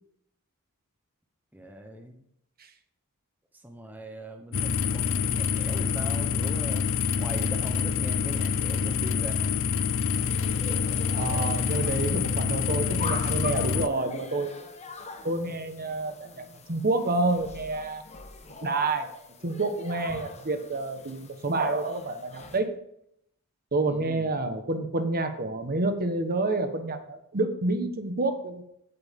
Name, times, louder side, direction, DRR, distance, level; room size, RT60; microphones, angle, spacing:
voice 1, 1.5-2.2 3.6-6.9 7.2-9.6 23.9-24.3, equal, 10° right, 3 dB, 1.0 m, -41 dB
sound 1, 4.5-13.9, left 6 dB, 60° left, 0.5 m, -27 dB
sound 2, 10.2-22.6, left 3 dB, 30° left, 1.2 m, -43 dB
voice 2, 11.1-14.5 15.2-18.0 18.6-19.1 19.4-22.7 23.7-28.6, right 2 dB, 45° right, 7 dB, 1.3 m, -28 dB
16.0 x 8.1 x 3.7 m, 0.75 s
head